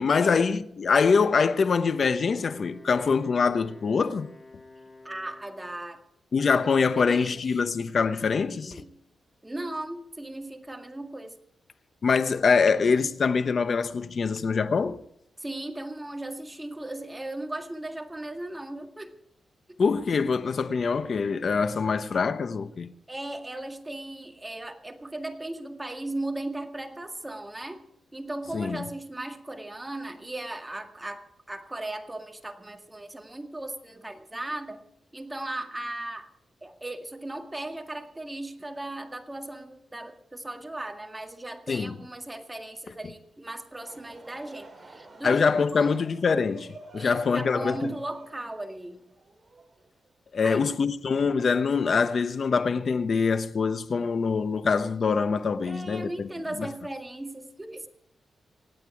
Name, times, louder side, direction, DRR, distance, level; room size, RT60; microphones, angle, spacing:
voice 1, 0.0-4.3 6.3-8.8 12.0-15.0 19.8-22.9 28.5-28.8 41.7-41.9 45.2-47.8 50.3-56.3 56.6-56.7, left 5 dB, 55° left, 1.0 m, -24 dB
Wind instrument woodwind instrument, 2.2-5.9, left 2 dB, 15° left, 7.1 m, -50 dB
voice 2, 5.0-6.0 6.5-6.6 7.0-7.4 8.5-8.9 9.4-11.4 15.4-19.2 23.1-27.8 28.1-34.8 35.1-36.3 36.6-45.4 45.7-46.0 47.0-49.0 50.4-50.6 55.7-57.9, right 1 dB, 15° right, 1.9 m, -37 dB
Laughter / Crowd, 43.6-50.1, right 3 dB, 30° right, 4.6 m, -48 dB
26.0 x 9.1 x 4.8 m
cardioid pair, 80°, 0 cm